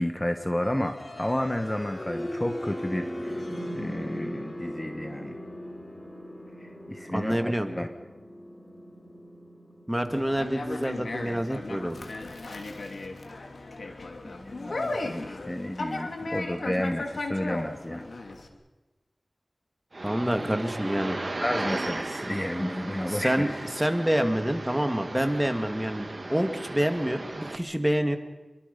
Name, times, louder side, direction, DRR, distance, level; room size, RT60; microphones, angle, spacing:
voice 1, 0.0-3.5 3.7-5.4 6.6-7.9 14.2-18.1 21.4-23.6, left 1 dB, 20° left, 6 dB, 1.5 m, -31 dB
sound 1, 0.6-12.5, equal, 40° left, 4.9 m, -39 dB
voice 2, 7.1-7.7 9.9-12.1 20.0-21.2 23.1-23.5 23.8-28.2, equal, 10° right, 6 dB, 2.3 m, -27 dB
Conversation, 10.1-18.5, left 2 dB, 80° left, 2.6 m, -36 dB
sound 2, 19.9-27.6, right 2 dB, 50° right, 1.7 m, -36 dB
27.5 x 23.0 x 5.5 m, 1.1 s
wide cardioid pair, 60°, 0 cm